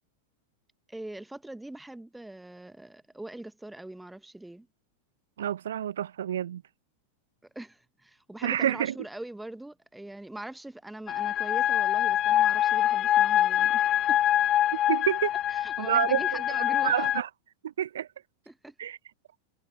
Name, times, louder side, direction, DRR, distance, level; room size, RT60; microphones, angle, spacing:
voice 1, 0.9-4.7 7.4-14.2 15.5-17.1 18.5-18.7, right 1 dB, 5° right, 1.3 m, -42 dB
voice 2, 5.4-6.6 8.4-8.9 14.9-15.3 15.8-16.2 16.5-17.3 17.6-18.1 18.8-19.0, right 10 dB, 60° right, 1.2 m, -28 dB
sound 1, 11.1-17.2, left 12 dB, 30° left, 0.5 m, -25 dB
figure-of-eight pair, 90°, 0 cm